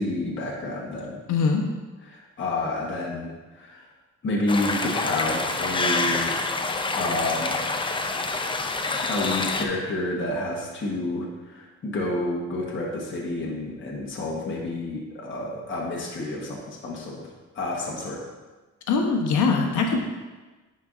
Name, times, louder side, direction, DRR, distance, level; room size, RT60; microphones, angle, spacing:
voice 1, 0.0-1.2 2.1-3.8 4.2-6.4 6.9-7.7 8.9-17.2 17.5-18.2, left 2 dB, 40° left, -3 dB, 1.2 m, -29 dB
voice 2, 1.3-1.7 18.9-20.0, left 4 dB, 80° left, 3 dB, 1.0 m, -22 dB
sound 1, 4.5-9.7, left 3 dB, 15° left, 0.5 m, -27 dB
10.0 x 4.4 x 2.5 m, 1.3 s
cardioid pair, 90°, 30 cm